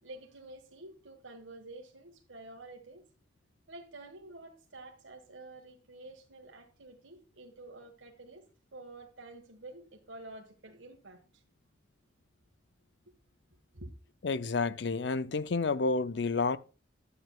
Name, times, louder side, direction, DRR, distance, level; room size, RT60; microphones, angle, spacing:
voice 1, 0.0-3.1 3.7-11.4 13.7-13.9, right 2 dB, 85° right, 1.6 m, -49 dB
voice 2, 14.2-16.6, left 4 dB, 65° left, 0.6 m, -30 dB
11.0 x 8.9 x 2.4 m
head